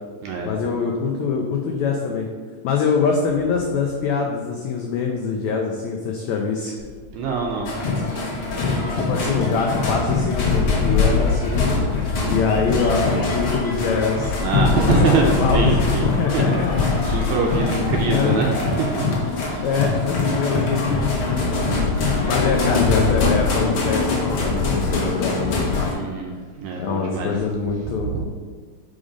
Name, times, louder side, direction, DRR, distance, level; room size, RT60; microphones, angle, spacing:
voice 1, 0.5-2.3 2.6-6.8 8.9-11.8 12.2-14.3 14.8-16.8 17.6-18.4 19.6-21.4 22.0-25.9 26.8-28.1, left 5 dB, 85° left, 1 dB, 1.6 m, -24 dB
Thunder, 6.8-24.8, left 3 dB, 45° left, 0.6 m, -36 dB
voice 2, 7.1-7.7 14.4-16.0 16.3-16.4 16.8-18.5 18.8-19.1 19.4-19.7 25.9-27.3 28.1-28.3, right 5 dB, 80° right, 0 dB, 1.7 m, -24 dB
sound 1, 7.6-25.9, left 3 dB, 60° left, 1.4 m, -22 dB
5.2 x 5.1 x 5.0 m, 1.5 s
omnidirectional pair, 3.9 m